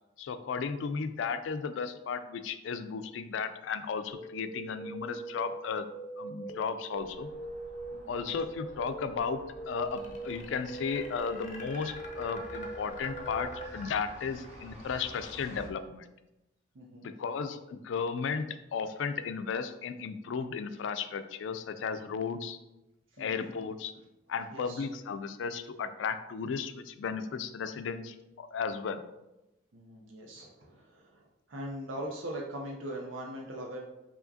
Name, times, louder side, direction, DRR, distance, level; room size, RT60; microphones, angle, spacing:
voice 1, 0.2-5.9 6.2-7.3 8.1-9.4 9.7-16.1 17.0-22.6 23.2-23.9 24.3-29.0, left 5 dB, 80° left, 10 dB, 0.3 m, -35 dB
sound 1, 4.1-13.7, right 2 dB, 5° left, 0.3 m, -42 dB
sound 2, 6.9-15.7, equal, 35° right, 0.8 m, -51 dB
sound 3, 9.8-14.8, left 2 dB, 40° left, 0.6 m, -46 dB
voice 2, 16.7-17.1 23.1-23.5 24.5-24.9 29.7-33.8, right 1 dB, 90° right, -1 dB, 0.6 m, -41 dB
4.8 x 2.8 x 2.6 m, 0.95 s
head